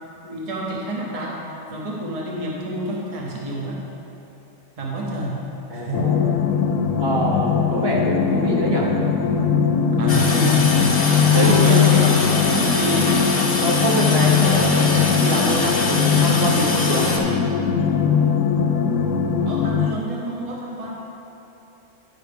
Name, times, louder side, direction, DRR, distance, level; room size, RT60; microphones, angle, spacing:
voice 1, 0.2-1.4 1.7-3.8 4.8-5.4 5.7-6.1 9.9-13.4 19.4-21.0, equal, 30° right, -3 dB, 0.9 m, -27 dB
voice 2, 5.7-6.2 7.0-8.9 11.3-11.8 13.6-17.1, right 1 dB, 50° right, -3 dB, 1.3 m, -24 dB
sound 1, 5.9-19.9, left 7 dB, 80° left, 0.9 m, -20 dB
Toilet flush, 10.1-17.2, left 2 dB, 50° left, 1.2 m, -24 dB
9.5 x 4.6 x 5.2 m, 2.9 s
omnidirectional pair, 1.3 m